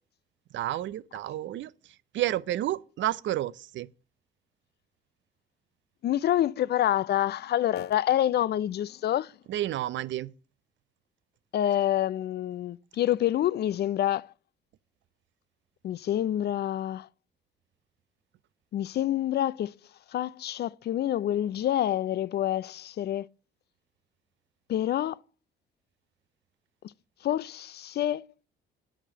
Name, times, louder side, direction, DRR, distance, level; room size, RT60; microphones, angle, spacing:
voice 1, 0.5-1.7 2.1-3.9 9.5-10.3, right 13 dB, 70° right, 0.5 m, -30 dB
voice 2, 6.0-9.3 11.5-14.3 15.8-17.1 18.7-19.7 20.1-23.3 24.7-25.2 27.2-28.3, left 12 dB, 55° left, 0.4 m, -27 dB
8.7 x 5.0 x 7.4 m
cardioid pair, 90°, 20 cm